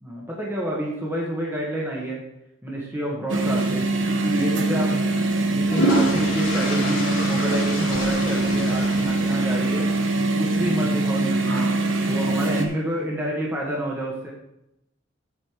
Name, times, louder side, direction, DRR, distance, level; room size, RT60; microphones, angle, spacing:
voice 1, 0.0-2.2 2.6-3.9 4.2-9.9 10.4-11.7 12.1-14.3, right 1 dB, 10° right, -4 dB, 1.6 m, -29 dB
sound 1, 3.3-12.7, right 2 dB, 75° right, 1.1 m, -23 dB
sound 2, 5.6-9.9, equal, 85° left, 2.7 m, -28 dB
8.6 x 6.6 x 4.8 m, 0.83 s
head